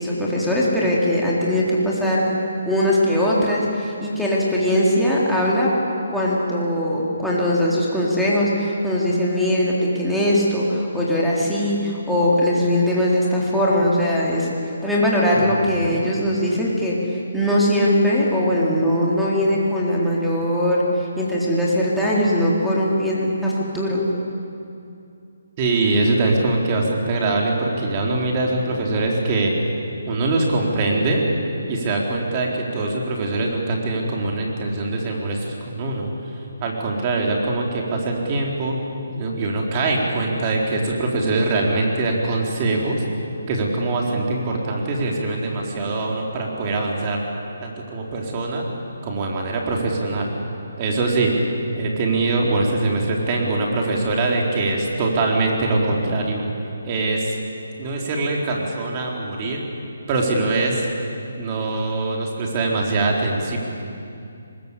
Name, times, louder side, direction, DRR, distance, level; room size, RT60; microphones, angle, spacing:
voice 1, 0.0-2.3 2.7-5.7 6.1-14.5 14.8-17.0 17.3-24.0, equal, ahead, -7 dB, 4.1 m, -20 dB
voice 2, 15.3-16.0 25.6-29.5 30.1-31.2 31.7-36.1 36.6-38.8 39.1-43.0 43.5-47.2 47.6-48.6 49.0-50.3 50.8-51.3 51.8-56.4 56.8-57.4 57.8-59.6 60.1-60.9 61.4-63.6, right 2 dB, 30° right, 0 dB, 4.2 m, -23 dB
23.5 x 21.0 x 8.5 m, 2.6 s
hypercardioid pair, 160°, 0 cm